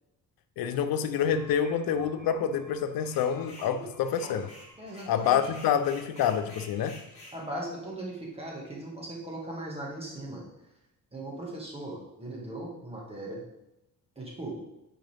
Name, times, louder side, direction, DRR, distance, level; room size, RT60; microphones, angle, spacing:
voice 1, 0.6-4.5 5.1-7.0, left 8 dB, 90° left, 10 dB, 0.6 m, -27 dB
sound 1, 1.0-7.8, right 1 dB, 60° right, 1.9 m, -53 dB
sound 2, 3.0-3.7 4.1-7.4, left 1 dB, 20° left, 2.5 m, -49 dB
voice 2, 4.8-5.4 7.3-10.4 11.1-13.4 14.2-14.5, right 1 dB, 15° right, -3 dB, 1.8 m, -38 dB
9.1 x 5.1 x 3.4 m, 0.91 s
cardioid pair, 150°, 34 cm